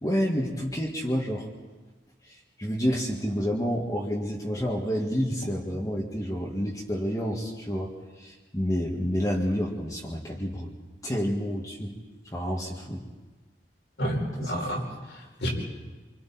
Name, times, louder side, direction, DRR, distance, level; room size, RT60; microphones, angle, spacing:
voice 1, 0.0-1.5 2.2-10.7 11.0-12.0 12.2-13.0 14.4-14.8, equal, 20° left, -4 dB, 2.0 m, -29 dB
voice 2, 14.0-15.5, equal, 85° left, -3 dB, 5.3 m, -30 dB
27.0 x 25.5 x 4.4 m, 1.2 s
head